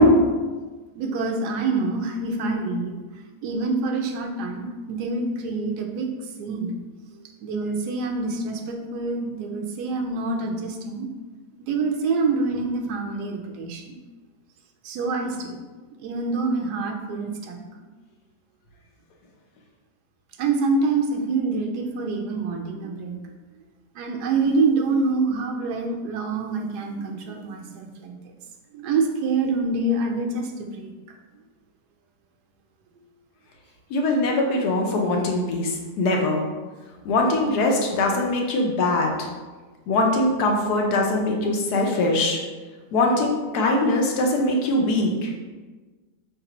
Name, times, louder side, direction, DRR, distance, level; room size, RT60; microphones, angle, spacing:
voice 1, 0.9-3.0 3.4-6.1 6.4-6.8 7.4-11.1 11.6-14.0 14.8-15.6 16.0-17.6 20.4-23.3 23.9-28.2 28.7-30.9 44.6-45.1, right 3 dB, 80° right, 3 dB, 1.1 m, -26 dB
voice 2, 33.9-35.7 36.0-36.4 37.1-39.1 39.9-42.4 42.9-45.3, left 2 dB, 75° left, 1 dB, 1.2 m, -22 dB
4.6 x 3.3 x 2.9 m, 1.3 s
omnidirectional pair, 1.7 m